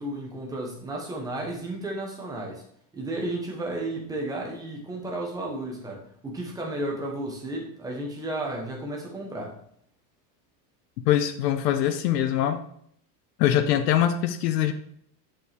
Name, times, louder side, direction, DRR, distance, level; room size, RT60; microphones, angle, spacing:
voice 1, 0.0-2.6 2.9-9.5, right 1 dB, 10° right, -1 dB, 1.0 m, -33 dB
voice 2, 11.1-12.6 13.4-14.7, left 11 dB, 90° left, 9 dB, 0.9 m, -23 dB
7.5 x 7.0 x 3.4 m, 0.65 s
supercardioid pair, 180°, 47 cm